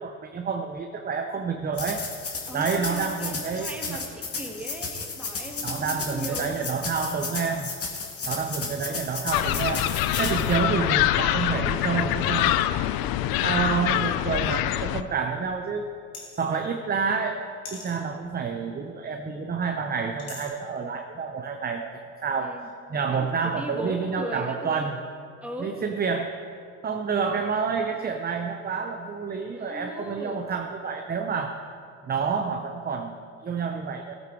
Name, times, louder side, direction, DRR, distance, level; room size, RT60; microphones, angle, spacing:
voice 1, 0.0-2.0 2.5-4.0 5.6-7.7 8.3-12.6 13.4-15.9 16.4-17.4 17.7-21.9 22.2-22.6 22.9-25.0 25.6-26.3 26.8-31.6 32.0-34.1, right 5 dB, 20° right, 5 dB, 0.8 m, -29 dB
sound 1, 1.7-10.5, left 4 dB, 35° left, 2.1 m, -34 dB
voice 2, 2.5-6.9 22.4-22.7 23.1-25.0 25.4-25.7 27.3-27.5 29.5-30.5, equal, 5° right, 1 dB, 2.0 m, -38 dB
sound 2, 9.3-15.0, left 13 dB, 60° left, 0.6 m, -24 dB
sound 3, 16.1-16.5 17.6-18.0 20.2-20.5, left 4 dB, 85° left, 2.9 m, -40 dB
17.0 x 8.4 x 4.7 m, 2.3 s
hypercardioid pair, 80°, 42 cm